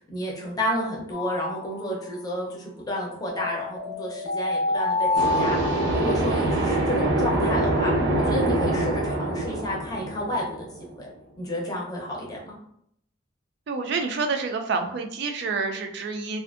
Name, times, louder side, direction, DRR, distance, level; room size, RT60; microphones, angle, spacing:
voice 1, 0.1-5.6 5.9-7.9 8.2-11.1 11.4-12.6, equal, 20° left, -3 dB, 0.6 m, -31 dB
sound 1, 1.1-2.2 3.3-6.5, left 2 dB, 60° left, 0.6 m, -28 dB
sound 2, 5.2-10.8, right 2 dB, 80° right, 0.7 m, -24 dB
voice 2, 13.7-16.4, right 4 dB, 60° right, 5 dB, 0.4 m, -28 dB
2.5 x 2.4 x 2.4 m, 0.70 s
head